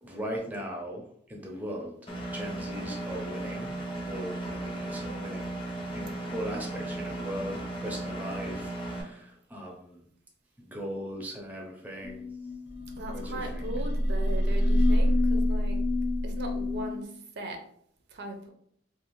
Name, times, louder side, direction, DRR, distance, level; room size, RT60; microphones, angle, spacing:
voice 1, 0.0-1.0 1.3-1.9 2.3-3.8 4.1-5.5 5.9-10.0 10.6-12.2 13.1-13.7, equal, 10° right, 0 dB, 0.5 m, -38 dB
Engine, 2.1-9.0, right 1 dB, 30° left, 0.7 m, -36 dB
sound 1, 12.0-17.0, left 1 dB, 75° left, 0.6 m, -26 dB
voice 2, 13.0-15.8 16.2-17.6 18.1-18.5, right 1 dB, 60° right, 3 dB, 0.5 m, -39 dB
2.5 x 2.4 x 3.0 m, 0.67 s
head